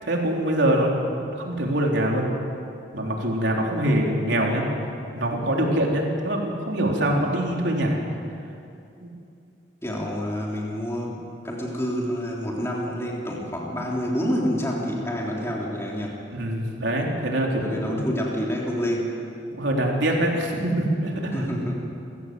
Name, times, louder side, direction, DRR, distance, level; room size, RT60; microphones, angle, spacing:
voice 1, 0.0-2.3 2.9-4.7 5.1-8.0 9.0-9.1 16.3-18.0 19.5-21.5, right 1 dB, 75° right, -1 dB, 3.8 m, -24 dB
voice 2, 9.8-11.2 11.4-16.2 17.6-19.1 21.3-21.8, equal, 15° left, -3 dB, 3.3 m, -28 dB
28.5 x 16.0 x 7.8 m, 2.6 s
head